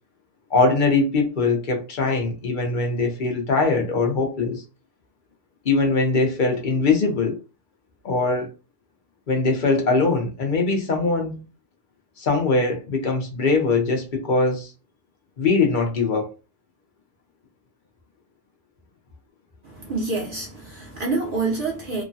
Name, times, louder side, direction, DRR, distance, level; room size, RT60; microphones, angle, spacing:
voice 1, 0.5-4.6 5.6-7.4 8.0-8.5 9.3-11.5 12.2-14.7 15.4-16.3, left 3 dB, 45° left, 0.8 m, -21 dB
voice 2, 19.6-22.0, right 3 dB, 50° right, 0.9 m, -27 dB
3.0 x 2.2 x 2.6 m
omnidirectional pair, 1.3 m